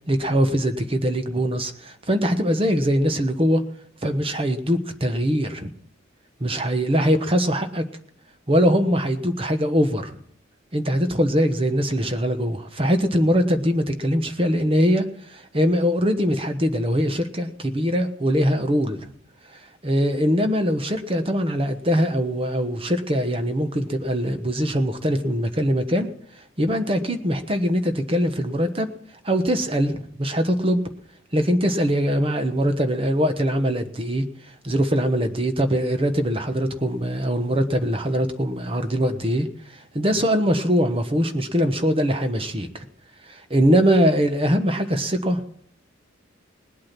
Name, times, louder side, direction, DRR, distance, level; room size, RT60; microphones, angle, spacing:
voice 1, 0.1-3.6 4.0-5.7 6.4-7.8 8.5-10.2 10.7-19.0 19.8-26.1 26.6-28.9 29.2-30.8 31.3-34.2 34.6-39.5 39.7-42.8 43.3-45.4, equal, 25° right, 8 dB, 1.2 m, -22 dB
19.5 x 8.6 x 5.9 m, 0.67 s
head